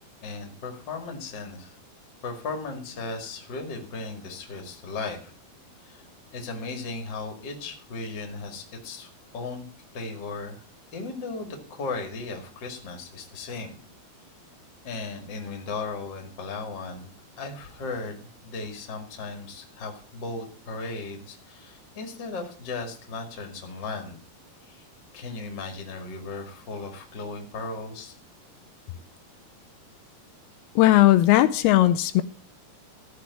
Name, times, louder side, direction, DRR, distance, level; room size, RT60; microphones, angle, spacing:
voice 1, 0.2-1.8 2.2-5.3 5.8-6.1 6.3-9.7 9.9-10.6 10.9-13.8 14.8-17.1 17.4-24.2 24.6-24.8 25.1-28.1, left 3 dB, 35° left, 4 dB, 2.1 m, -36 dB
voice 2, 30.8-32.2, left 15 dB, 85° left, 11 dB, 2.6 m, -17 dB
14.0 x 5.0 x 8.2 m, 0.42 s
omnidirectional pair, 4.5 m